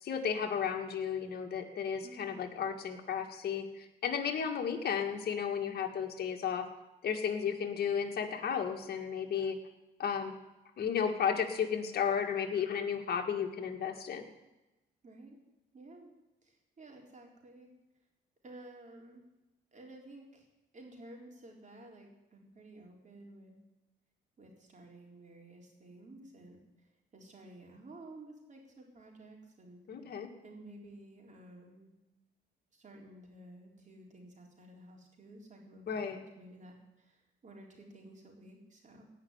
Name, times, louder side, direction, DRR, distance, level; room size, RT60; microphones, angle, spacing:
voice 1, 0.0-6.7 7.0-9.6 10.0-10.4 10.8-14.3 29.9-30.3 35.9-36.2, left 7 dB, 55° left, 3 dB, 1.9 m, -33 dB
voice 2, 2.0-2.4 15.0-15.4 15.7-16.1 16.4-17.7 18.4-19.2 19.7-20.5 20.7-23.6 24.4-29.8 30.4-31.9 32.7-39.1, right 1 dB, 40° right, 0 dB, 3.8 m, -53 dB
17.0 x 5.7 x 9.7 m, 1.0 s
cardioid pair, 95°, 19 cm